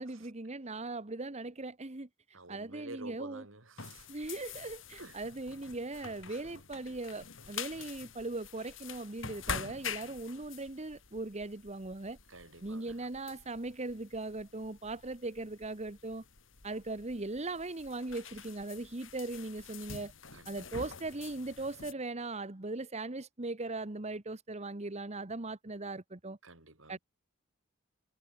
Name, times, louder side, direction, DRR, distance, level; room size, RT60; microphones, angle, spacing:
voice 1, 0.0-3.5 4.1-12.2 12.6-16.2 16.6-20.1 20.4-26.4 26.9-27.0, right 2 dB, 35° right, 1.3 m, -39 dB
voice 2, 2.3-4.0 5.0-5.2 12.3-12.9 20.3-20.5 26.4-26.9, right 2 dB, 75° right, 7.9 m, -49 dB
sound 1, 3.8-21.9, left 6 dB, 70° left, 3.6 m, -46 dB
head